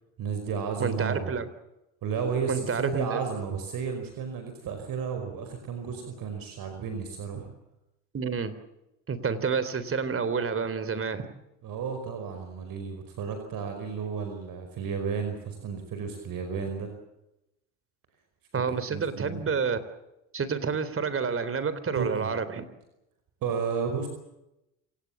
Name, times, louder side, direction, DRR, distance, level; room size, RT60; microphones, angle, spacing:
voice 1, 0.2-1.3 2.0-7.5 11.6-16.9 18.7-19.5 21.9-22.3 23.4-24.1, right 6 dB, 55° right, 6 dB, 5.2 m, -32 dB
voice 2, 0.8-1.5 2.5-3.2 8.1-8.5 9.1-11.3 18.5-19.8 20.3-22.6, right 5 dB, 30° right, 14 dB, 3.6 m, -29 dB
27.5 x 18.0 x 7.4 m, 0.89 s
supercardioid pair, 85°, 41 cm